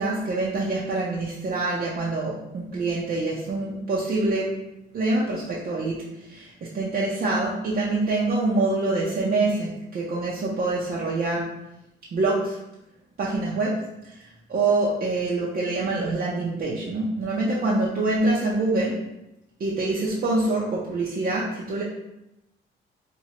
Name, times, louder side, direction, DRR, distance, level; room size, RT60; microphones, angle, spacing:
voice 1, 0.0-4.5 4.9-11.5 12.1-12.6 13.2-13.8 14.1-14.2 14.5-19.0 19.6-21.8, right 2 dB, 50° right, -5 dB, 0.6 m, -25 dB
4.3 x 2.2 x 2.9 m, 0.91 s
cardioid pair, 90°, 20 cm